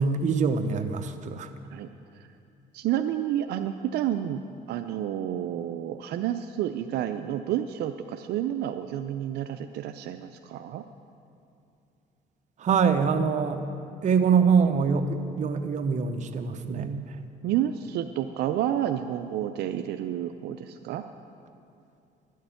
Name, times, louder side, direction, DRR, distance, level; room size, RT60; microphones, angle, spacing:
voice 1, 0.0-1.5 12.6-13.6 14.0-17.2, right 6 dB, 45° right, 7 dB, 0.8 m, -24 dB
voice 2, 2.7-4.4 4.7-10.8 16.6-17.1 17.4-21.0, right 11 dB, 75° right, 7 dB, 0.5 m, -30 dB
11.5 x 6.6 x 9.1 m, 2.6 s
cardioid pair, 110°, 17 cm